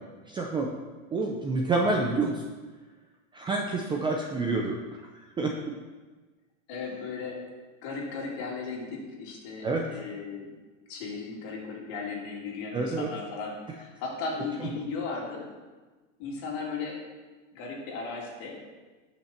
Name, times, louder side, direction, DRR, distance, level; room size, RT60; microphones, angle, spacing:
voice 1, 0.3-0.7 1.1-2.5 3.3-5.1 5.4-5.5 9.6-9.9 12.7-13.1 14.6-14.9, right 3 dB, 10° right, 1 dB, 0.5 m, -28 dB
voice 2, 6.7-7.4 7.8-10.5 10.9-15.4 16.2-17.0 17.5-18.6, left 4 dB, 45° left, -2 dB, 3.0 m, -36 dB
13.5 x 5.9 x 4.4 m, 1.3 s
supercardioid pair, 145°, 39 cm